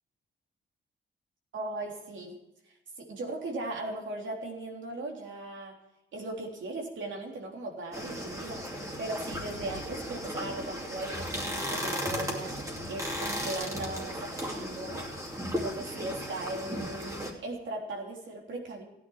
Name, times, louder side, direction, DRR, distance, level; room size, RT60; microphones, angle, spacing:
voice 1, 1.5-2.4 3.0-5.7 6.1-8.6 9.0-12.5 12.9-15.0 15.5-18.8, right 2 dB, 75° right, 0 dB, 3.5 m, -38 dB
sound 1, 7.9-17.3, equal, 15° right, 2.7 m, -36 dB
15.5 x 9.9 x 4.6 m, 0.89 s
wide cardioid pair, 140°, 20 cm